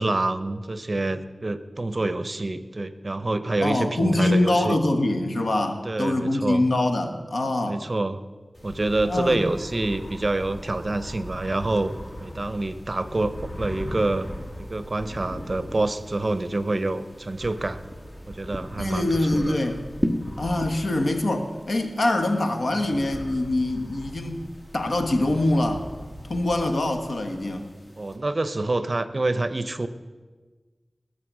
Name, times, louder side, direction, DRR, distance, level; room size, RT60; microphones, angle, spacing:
voice 1, 0.0-4.8 5.8-6.6 7.7-8.2 8.6-11.9 12.2-14.3 14.6-17.8 18.3-19.6 28.0-29.9, right 2 dB, 45° right, 13 dB, 0.7 m, -27 dB
voice 2, 3.6-7.8 9.1-9.4 18.8-19.8 20.4-25.9 26.3-27.7, left 1 dB, 80° left, 5 dB, 1.2 m, -24 dB
sound 1, 8.5-28.2, equal, 40° left, 2.3 m, -41 dB
sound 2, 9.2-20.7, equal, 15° left, 1.4 m, -38 dB
20.0 x 6.8 x 6.1 m, 1.4 s
wide cardioid pair, 75°, 0 cm